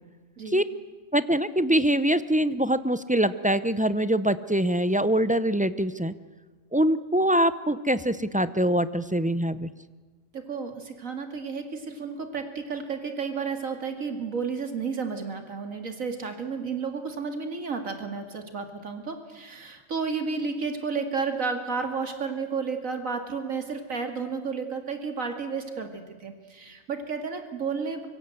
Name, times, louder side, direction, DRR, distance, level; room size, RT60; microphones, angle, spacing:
voice 1, 1.1-6.1 6.7-9.7, right 1 dB, 10° right, 13 dB, 0.4 m, -24 dB
voice 2, 10.3-28.1, right 5 dB, 80° right, 6 dB, 2.6 m, -32 dB
24.5 x 24.0 x 7.9 m, 1.4 s
omnidirectional pair, 1.4 m